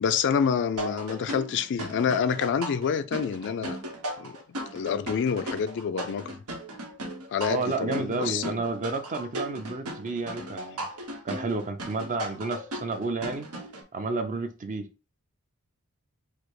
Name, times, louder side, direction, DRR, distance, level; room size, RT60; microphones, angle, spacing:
voice 1, 0.0-3.8 4.2-4.4 4.7-6.4 7.3-8.5, left 7 dB, 55° left, 0.4 m, -27 dB
sound 1, 0.8-13.8, right 1 dB, 85° right, 1.0 m, -37 dB
voice 2, 7.5-10.9 11.2-13.5 13.9-14.9, right 3 dB, 35° right, 0.6 m, -31 dB
4.9 x 2.0 x 4.6 m
head